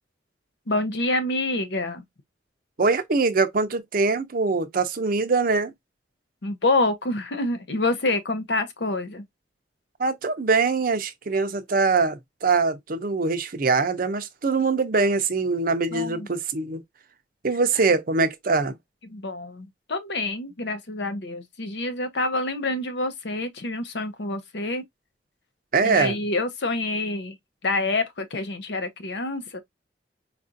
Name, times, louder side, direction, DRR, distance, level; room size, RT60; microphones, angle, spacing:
voice 1, 0.7-2.0 6.4-9.2 15.9-16.3 19.1-24.8 25.8-27.4 27.6-29.6, left 2 dB, 65° left, 0.7 m, -27 dB
voice 2, 2.8-5.7 10.0-16.8 17.4-18.7 25.7-26.1, right 4 dB, 50° right, 0.6 m, -23 dB
4.6 x 2.5 x 2.6 m
head